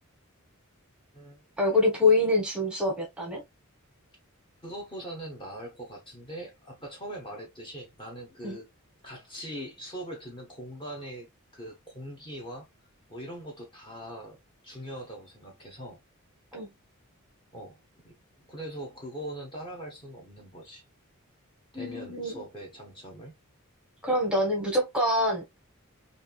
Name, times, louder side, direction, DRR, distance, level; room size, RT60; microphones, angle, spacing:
voice 1, 1.6-3.4 8.4-8.6 16.5-16.7 21.7-22.4 24.0-25.4, left 2 dB, 5° right, 1.0 m, -25 dB
voice 2, 4.6-8.7 9.0-11.3 11.5-12.7 13.1-14.4 14.6-16.0 17.5-17.8 18.0-20.8 21.7-23.4, right 1 dB, 20° left, 0.9 m, -41 dB
3.2 x 2.6 x 2.2 m
head